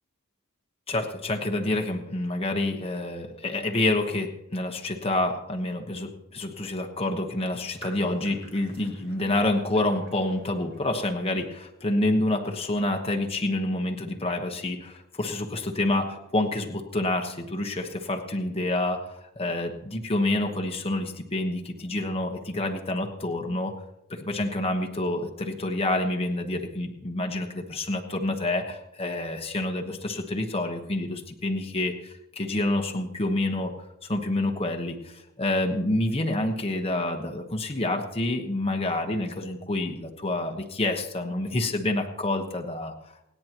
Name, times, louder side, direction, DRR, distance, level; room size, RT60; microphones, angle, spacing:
voice 1, 0.9-23.7 24.1-33.7 34.0-42.9, left 2 dB, 25° left, 3 dB, 1.2 m, -28 dB
sound 1, 7.5-11.5, right 2 dB, 55° right, 6.0 m, -51 dB
28.5 x 9.6 x 3.0 m, 0.86 s
head